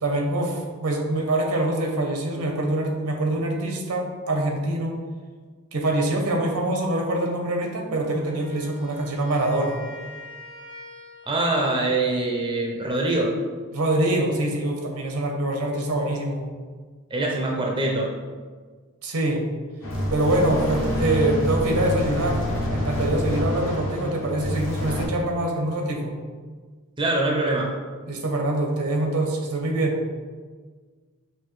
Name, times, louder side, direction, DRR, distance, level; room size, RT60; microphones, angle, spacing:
voice 1, 0.0-5.0 5.7-9.8 13.7-16.4 19.0-19.4 20.1-26.1 28.1-30.0, right 1 dB, 75° right, 1 dB, 0.8 m, -24 dB
Wind instrument woodwind instrument, 8.3-11.6, left 2 dB, 20° left, 0.7 m, -44 dB
voice 2, 11.3-13.3 17.1-18.1 27.0-27.7, right 2 dB, 20° right, -1 dB, 0.5 m, -23 dB
sound 1, 19.8-25.1, left 1 dB, 60° left, 1.2 m, -27 dB
5.8 x 2.6 x 3.1 m, 1.5 s
head